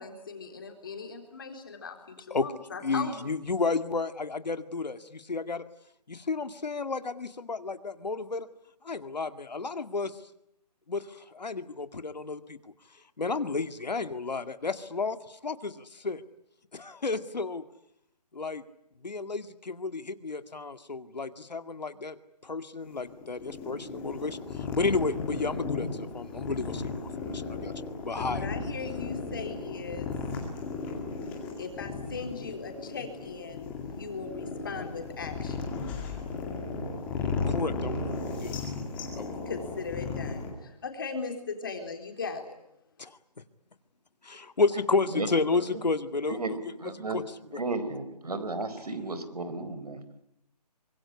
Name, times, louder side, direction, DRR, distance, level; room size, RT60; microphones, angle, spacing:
voice 1, 0.0-3.3 28.2-30.1 31.6-35.6 39.5-42.5, left 5 dB, 30° left, 4 dB, 3.9 m, -38 dB
voice 2, 2.8-5.7 6.1-8.5 8.8-10.2 10.9-12.7 13.2-16.2 16.7-17.6 18.3-18.6 19.0-22.2 22.4-27.7 28.0-28.5 37.5-38.1 38.4-38.6 39.2-39.4 43.0-43.2 44.2-47.2 47.5-47.6, left 4 dB, 85° left, 10 dB, 2.1 m, -32 dB
sound 1, 22.8-40.5, left 4 dB, 5° left, 2.2 m, -35 dB
voice 3, 46.8-47.2 47.5-50.0, right 3 dB, 65° right, 12 dB, 4.3 m, -33 dB
25.0 x 22.5 x 9.7 m, 0.79 s
hypercardioid pair, 175°, 21 cm